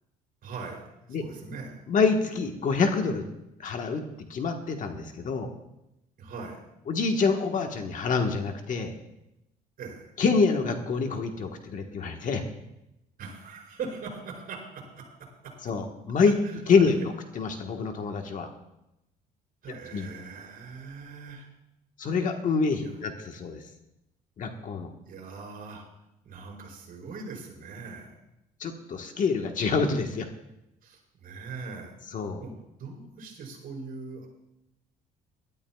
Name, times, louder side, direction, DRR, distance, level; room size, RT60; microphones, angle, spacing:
voice 1, 0.4-0.8 1.2-1.8 6.2-6.6 9.8-10.1 13.2-15.5 16.4-16.9 19.6-21.5 22.8-23.0 25.1-25.9 26.2-28.2 30.8-31.9 32.4-32.5 32.8-34.3, right 4 dB, 55° right, -1 dB, 5.5 m, -41 dB
voice 2, 1.9-3.2 3.6-4.0 4.3-5.5 6.9-8.9 10.2-12.4 15.6-16.3 16.7-17.0 17.3-18.5 19.9-20.1 22.0-23.6 24.4-24.9 28.6-30.3 32.1-32.4, left 4 dB, 50° left, 4 dB, 1.4 m, -26 dB
21.5 x 12.5 x 2.3 m, 0.88 s
cardioid pair, 110°, 17 cm